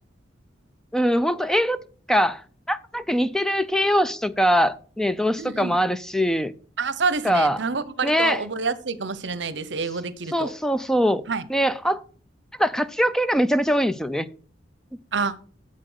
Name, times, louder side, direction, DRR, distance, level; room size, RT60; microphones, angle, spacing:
voice 1, 0.9-1.8 2.1-2.4 2.7-6.5 7.2-7.6 8.0-8.4 10.3-11.2 11.5-12.0 12.6-14.3, equal, 5° left, 0.4 m, -22 dB
voice 2, 5.4-5.8 6.8-10.5 11.3-11.4 15.1-15.3, right 4 dB, 65° right, 0.8 m, -27 dB
7.6 x 7.5 x 6.4 m
head